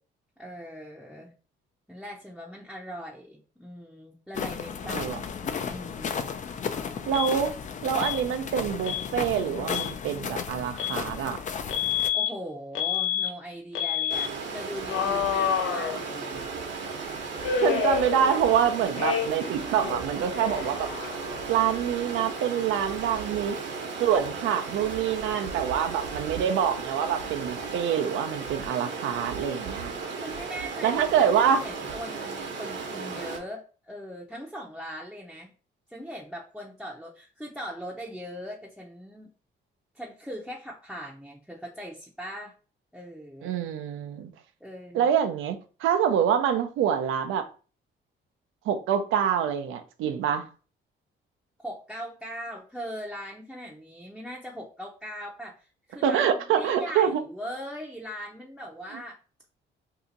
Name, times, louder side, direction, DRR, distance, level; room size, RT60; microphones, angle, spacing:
voice 1, 0.4-1.4 1.9-5.1 5.6-6.3 12.1-16.5 30.2-35.5 35.9-39.3 39.9-42.5 42.9-43.6 44.6-45.1 51.6-59.2, equal, ahead, 0.6 m, -40 dB
sound 1, 4.3-12.1, left 6 dB, 40° left, 0.4 m, -34 dB
voice 2, 4.9-5.2 7.1-7.5 7.8-11.4 17.6-20.9 21.5-23.6 24.0-29.9 30.8-31.6 43.4-44.3 44.9-47.5 48.7-50.5 56.0-57.2, right 8 dB, 85° right, 0.5 m, -26 dB
Alarm, 7.1-7.3 8.0-8.2 8.8-9.1 9.6-9.9 10.8-11.0 11.7-12.3 12.8-13.3 13.8-14.3 14.9-16.4 17.4-18.6 19.0-19.5 19.8-21.5, left 8 dB, 80° left, 0.6 m, -29 dB
Stream, 14.1-33.4, right 4 dB, 65° right, 0.9 m, -35 dB
2.8 x 2.4 x 3.8 m
cardioid pair, 90°, 20 cm